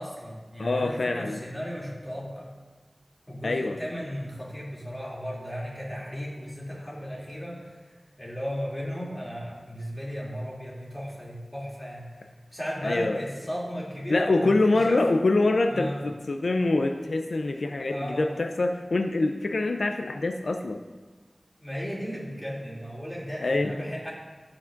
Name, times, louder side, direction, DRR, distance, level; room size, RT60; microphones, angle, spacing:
voice 1, 0.0-2.5 3.3-7.8 8.2-12.1 12.5-15.0 15.7-16.0 17.9-18.3 21.6-24.1, equal, 15° left, -5 dB, 2.7 m, -35 dB
voice 2, 0.6-1.4 3.4-3.8 12.8-13.2 14.1-20.8 23.4-23.9, left 2 dB, 90° left, 5 dB, 0.4 m, -25 dB
16.0 x 5.9 x 2.5 m, 1.3 s
wide cardioid pair, 60°, 0 cm